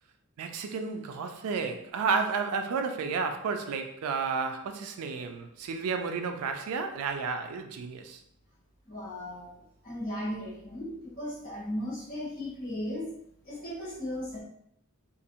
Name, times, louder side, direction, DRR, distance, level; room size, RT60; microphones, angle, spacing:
voice 1, 0.4-8.2, right 5 dB, 80° right, 0.3 m, -32 dB
voice 2, 8.8-9.6 9.8-13.0 13.4-14.4, left 1 dB, 40° left, 1.0 m, -36 dB
2.5 x 2.0 x 2.7 m
head